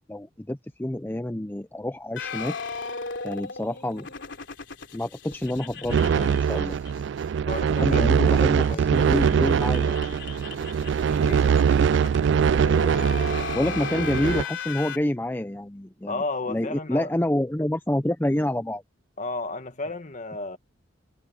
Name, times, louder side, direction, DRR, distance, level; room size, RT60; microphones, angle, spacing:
voice 1, 0.1-2.6 3.2-4.1 4.9-6.8 7.8-10.2 13.3-16.2 16.5-18.8, left 1 dB, 10° left, 0.6 m, -28 dB
sound 1, 2.2-7.3 7.5-7.6 7.9-8.0 8.3-15.0, left 5 dB, 65° left, 3.4 m, -37 dB
sound 2, 5.9-14.4, right 7 dB, 65° right, 0.3 m, -22 dB
voice 2, 7.5-9.0 11.0-11.5 16.1-17.1 19.2-20.6, left 3 dB, 40° left, 1.8 m, -33 dB
head